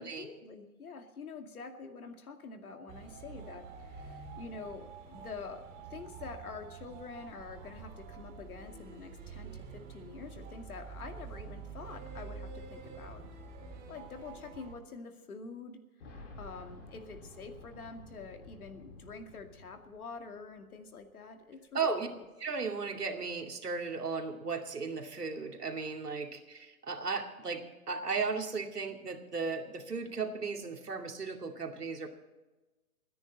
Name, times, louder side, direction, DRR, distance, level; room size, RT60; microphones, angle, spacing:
voice 1, 0.0-5.6 5.9-13.2 13.9-22.3, left 4 dB, 70° left, 6 dB, 2.4 m, -46 dB
sound 1, 2.9-14.7, right 5 dB, 20° right, 2.3 m, -47 dB
Boom, 16.0-20.7 21.0-21.1 22.2-22.3, left 2 dB, 50° left, 4.7 m, -52 dB
voice 2, 21.7-22.1 22.4-32.1, right 4 dB, 85° right, 4 dB, 2.5 m, -36 dB
27.0 x 10.0 x 4.1 m, 1.2 s
hypercardioid pair, 140°, 45 cm